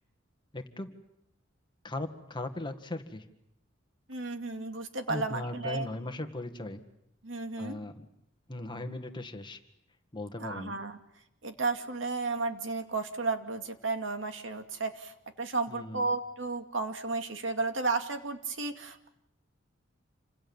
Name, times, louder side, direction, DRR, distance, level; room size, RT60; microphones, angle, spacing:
voice 1, 0.5-0.9 1.8-3.2 5.1-6.8 7.6-8.1 8.5-9.6 10.1-10.7 15.7-16.1, left 1 dB, 25° left, 6 dB, 2.0 m, -38 dB
voice 2, 4.1-5.9 7.2-7.8 10.4-11.0 11.4-15.1 15.4-19.1, right 3 dB, 75° right, 6 dB, 2.4 m, -33 dB
28.5 x 26.5 x 7.3 m, 0.80 s
head